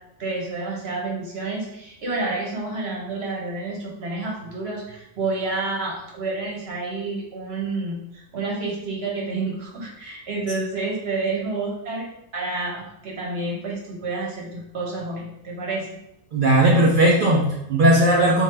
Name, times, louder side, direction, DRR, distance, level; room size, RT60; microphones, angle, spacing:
voice 1, 0.2-12.1 12.3-16.0, right 3 dB, 50° right, -2 dB, 1.0 m, -29 dB
voice 2, 16.3-18.4, right 1 dB, 75° right, -2 dB, 0.4 m, -17 dB
3.5 x 2.7 x 3.3 m, 0.84 s
omnidirectional pair, 1.5 m